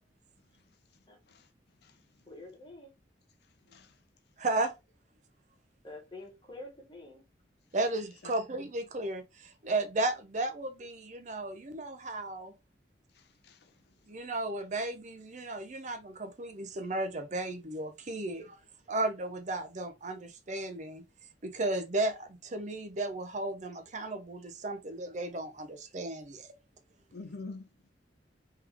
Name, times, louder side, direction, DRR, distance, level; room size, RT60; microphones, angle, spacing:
voice 1, 2.3-2.9 5.8-7.2, left 2 dB, 25° left, 1.3 m, -47 dB
voice 2, 4.4-4.7 7.7-12.5 14.1-18.6 18.9-21.0 21.4-26.5, right 2 dB, 40° right, 0.6 m, -34 dB
voice 3, 13.2-13.7 27.1-27.7, left 3 dB, 60° left, 0.6 m, -46 dB
3.5 x 3.3 x 3.3 m
head